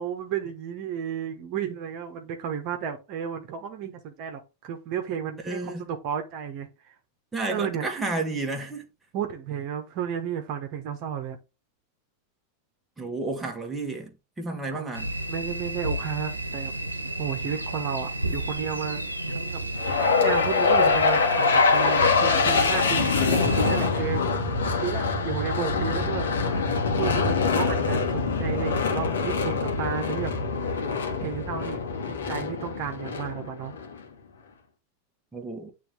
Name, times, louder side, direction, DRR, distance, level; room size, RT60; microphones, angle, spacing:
voice 1, 0.0-6.9 7.5-7.9 9.1-11.4 14.7-14.9 15.3-16.7 17.2-19.0 19.3-19.6 19.9-24.4 24.8-26.2 27.0-30.3 31.2-31.8 32.3-33.8, right 8 dB, 45° right, 1.2 m, -33 dB
voice 2, 5.4-5.9 7.3-8.9 13.0-14.1 14.4-15.1 35.3-35.7, right 2 dB, 10° right, 1.4 m, -31 dB
sound 1, 14.9-23.9, right 1 dB, 85° right, 1.0 m, -32 dB
sound 2, 19.8-34.0, left 4 dB, 65° left, 1.6 m, -24 dB
8.8 x 3.5 x 3.4 m
figure-of-eight pair, 90°, 0 cm